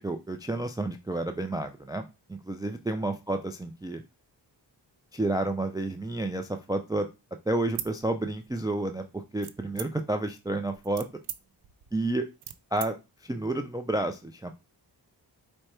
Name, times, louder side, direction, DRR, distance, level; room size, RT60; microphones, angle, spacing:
voice 1, 0.0-4.0 5.1-7.1 7.5-11.1 11.9-12.3 12.7-14.5, right 2 dB, 10° right, 7 dB, 0.3 m, -30 dB
sound 1, 7.7-8.7 9.4-10.2 10.7-12.9, right 10 dB, 65° right, 0.5 m, -40 dB
4.8 x 2.2 x 4.3 m, 0.26 s
wide cardioid pair, 65°, 45 cm